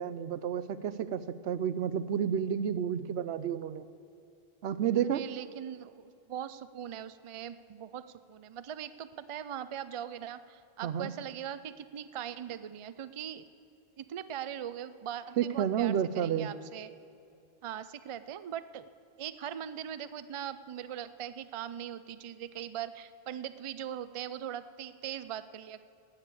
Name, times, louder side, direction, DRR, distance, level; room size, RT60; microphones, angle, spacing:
voice 1, 0.0-3.8 4.6-5.2 10.8-11.1 15.4-16.6, right 9 dB, 90° right, 14 dB, 0.9 m, -31 dB
voice 2, 5.1-13.5 14.0-16.9 17.6-18.9 19.2-25.8, right 10 dB, 50° right, 13 dB, 0.3 m, -40 dB
18.5 x 6.6 x 8.3 m, 2.7 s
omnidirectional pair, 1.1 m